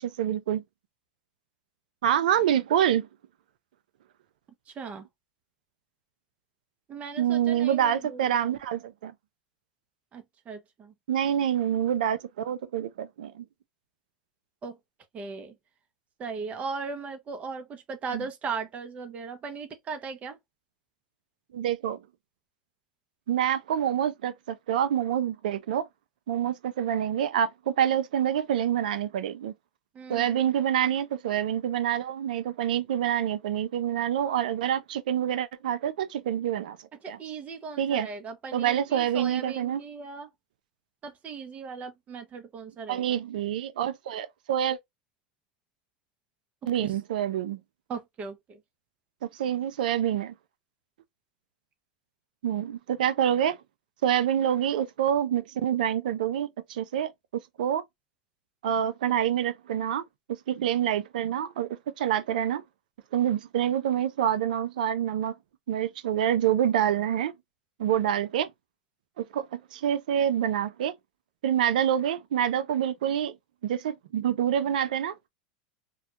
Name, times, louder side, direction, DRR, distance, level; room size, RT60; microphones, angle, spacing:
voice 1, 0.2-0.6 2.0-3.1 7.2-9.1 11.1-13.4 18.1-18.2 21.5-22.0 23.3-25.9 26.3-29.5 30.1-36.8 37.1-37.2 37.8-38.1 38.5-39.8 42.9-44.8 46.7-47.6 49.2-50.3 52.4-53.6 54.0-57.1 57.6-57.8 58.6-60.0 60.3-62.6 63.1-65.3 65.7-67.3 67.8-68.5 69.2-70.9 71.4-73.4 73.6-75.1, right 10 dB, 75° right, 0.4 m, -27 dB
voice 2, 4.8-5.1 6.9-8.6 10.1-10.9 14.6-14.8 15.1-15.5 16.2-20.4 29.9-30.4 37.0-40.3 41.0-43.0 46.8-46.9 47.9-48.6, right 5 dB, 30° right, 0.6 m, -38 dB
2.3 x 2.1 x 2.8 m
hypercardioid pair, 100°, 5 cm